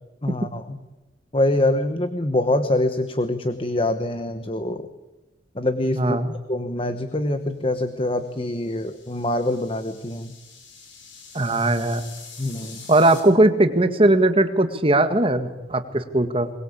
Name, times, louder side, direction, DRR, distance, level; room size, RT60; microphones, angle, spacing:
voice 1, 0.2-0.8 1.3-4.9 5.5-6.2 6.5-10.3 12.4-12.8, left 1 dB, 30° left, 9 dB, 1.2 m, -24 dB
voice 2, 5.9-6.3 11.3-12.0 12.9-16.5, right 2 dB, 30° right, 9 dB, 1.8 m, -19 dB
sound 1, 8.1-13.2, left 5 dB, 90° left, 6.6 m, -45 dB
22.5 x 21.0 x 8.6 m, 1.1 s
head